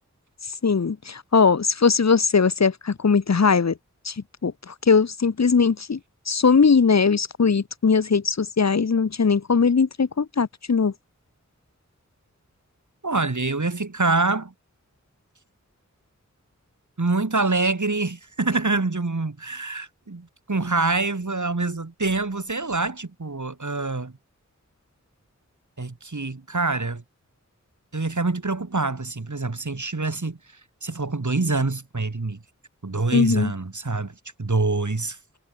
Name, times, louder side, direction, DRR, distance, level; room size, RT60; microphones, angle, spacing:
voice 1, 0.6-3.7 4.0-4.1 4.4-6.0 6.3-10.9 33.1-33.5, left 5 dB, 60° left, 0.9 m, -20 dB
voice 2, 13.0-14.5 17.0-24.1 25.8-27.0 27.9-30.4 30.8-32.4 32.8-34.1 34.4-35.2, right 3 dB, 75° right, 5.7 m, -25 dB
wide cardioid pair, 50°, 30 cm